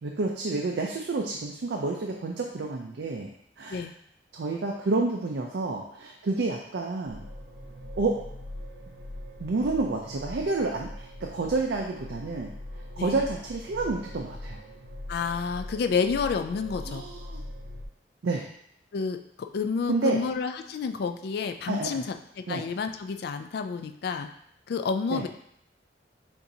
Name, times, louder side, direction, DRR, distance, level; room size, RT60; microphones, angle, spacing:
voice 1, 0.0-3.3 3.6-3.8 4.3-7.2 8.0-8.1 9.4-12.5 13.0-14.6 16.9-17.4 18.2-18.4 19.9-20.2 21.7-22.0 22.5-22.6 25.1-25.2, right 3 dB, 65° right, 1 dB, 0.4 m, -29 dB
sound 1, 7.1-17.8, left 1 dB, 85° right, 0.8 m, -41 dB
voice 2, 15.1-17.0 18.9-19.2 19.5-24.3 24.7-25.3, left 5 dB, 60° left, 7 dB, 0.3 m, -29 dB
6.9 x 2.6 x 2.7 m, 0.71 s
head